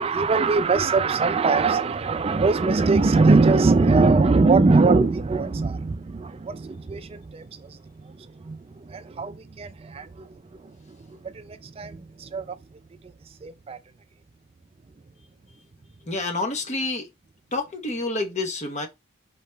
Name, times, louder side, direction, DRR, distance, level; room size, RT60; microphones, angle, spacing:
voice 1, 0.0-7.7 8.5-8.6 8.9-10.1 11.5-12.6 13.4-13.8, right 3 dB, 25° right, 0.3 m, -21 dB
voice 2, 16.1-17.1 17.5-18.9, left 2 dB, 30° left, 0.8 m, -28 dB
4.7 x 3.2 x 3.3 m
head